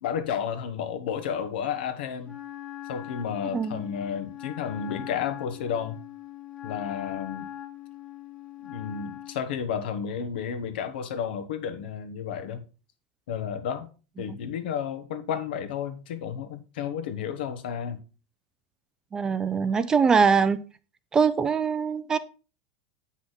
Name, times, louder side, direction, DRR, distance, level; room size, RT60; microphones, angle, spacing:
voice 1, 0.0-2.4 2.9-6.0 6.6-7.5 8.6-12.6 13.3-13.9 14.2-18.0, left 8 dB, 75° left, 1.2 m, -32 dB
Wind instrument woodwind instrument, 2.2-9.5, left 12 dB, 20° left, 1.3 m, -41 dB
voice 2, 3.5-3.9 14.3-14.4 19.1-20.6 21.1-22.2, right 5 dB, 10° right, 0.3 m, -23 dB
8.3 x 5.6 x 4.1 m
supercardioid pair, 175°, 5 cm